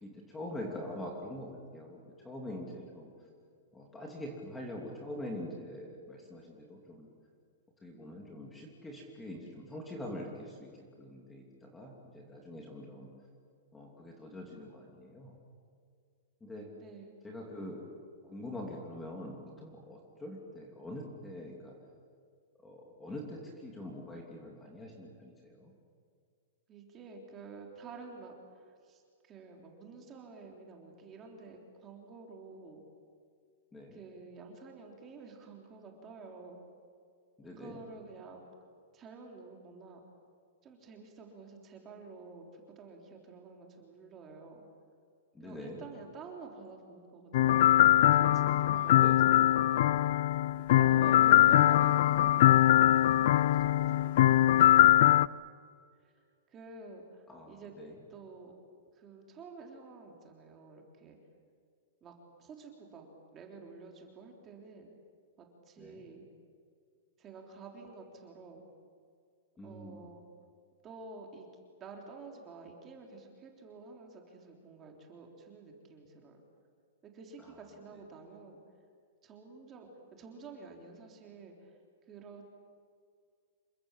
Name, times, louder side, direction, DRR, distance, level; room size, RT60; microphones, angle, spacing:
voice 1, 0.0-1.5 1.7-2.0 2.2-3.1 3.7-7.1 7.8-10.7 11.0-13.1 13.7-15.3 16.4-16.7 17.2-17.8 18.3-19.4 19.6-21.7 22.6-25.7 33.7-34.0 37.4-37.8 45.3-45.8 48.7-49.3 50.8-51.5 57.3-57.9 65.8-66.0 69.6-69.9, left 1 dB, 5° left, -1 dB, 2.8 m, -44 dB
voice 2, 16.7-17.1 26.7-32.8 33.9-36.6 37.4-38.5 38.9-40.0 40.6-44.7 45.4-47.6 48.0-49.8 50.7-52.6 53.1-55.1 56.0-56.1 56.5-57.7 58.1-58.5 58.9-61.2 62.0-62.1 62.4-63.1 63.3-64.9 65.4-66.2 67.2-68.7 69.6-70.2 70.8-71.5 71.8-76.4 77.0-78.6 79.2-81.7 82.0-82.4, right 4 dB, 15° right, 1 dB, 3.5 m, -50 dB
sound 1, 47.3-55.3, left 13 dB, 45° left, 0.6 m, -22 dB
28.5 x 24.0 x 7.5 m, 2.1 s
supercardioid pair, 175°, 0 cm